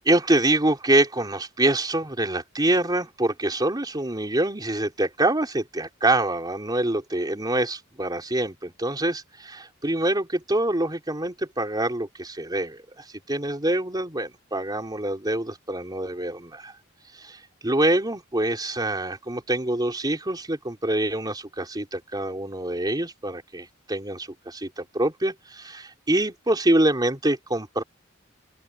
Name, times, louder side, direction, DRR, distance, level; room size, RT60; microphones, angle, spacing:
voice 1, 0.1-16.7 17.1-27.8, right 1 dB, 20° right, 3.8 m, -25 dB
open air
head